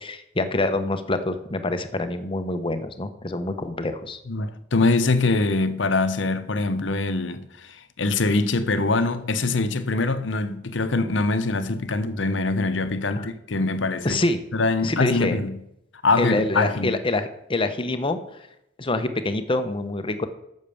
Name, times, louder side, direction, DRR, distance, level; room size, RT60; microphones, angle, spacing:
voice 1, 0.0-4.2 13.2-13.3 14.0-14.4 14.8-15.4 16.2-18.5 18.8-20.3, left 2 dB, 25° left, 0.8 m, -26 dB
voice 2, 4.3-14.2 14.5-15.6 16.0-17.0, left 3 dB, 70° left, 0.9 m, -23 dB
8.6 x 6.5 x 7.0 m
head